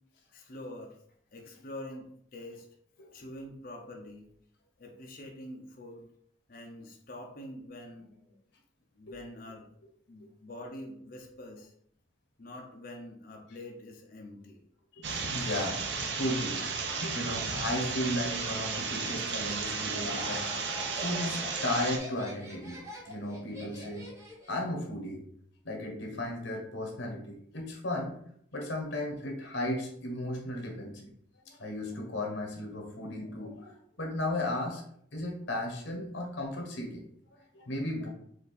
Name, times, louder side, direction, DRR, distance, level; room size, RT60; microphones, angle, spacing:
voice 1, 0.3-1.0 1.3-2.7 3.1-4.3 4.8-6.1 6.5-8.4 8.9-9.7 10.1-11.7 12.4-14.6, left 1 dB, 50° left, 1 dB, 0.8 m, -45 dB
voice 2, 14.9-24.1 24.5-25.2 25.6-28.2 28.5-31.1 31.4-34.8 35.1-38.1, left 1 dB, 80° left, 2 dB, 1.3 m, -35 dB
sound 1, 15.0-22.0, right 5 dB, 65° right, 0.7 m, -34 dB
Laughter, 19.5-24.6, left 1 dB, 15° right, 1.0 m, -43 dB
4.7 x 2.7 x 4.1 m, 0.65 s
head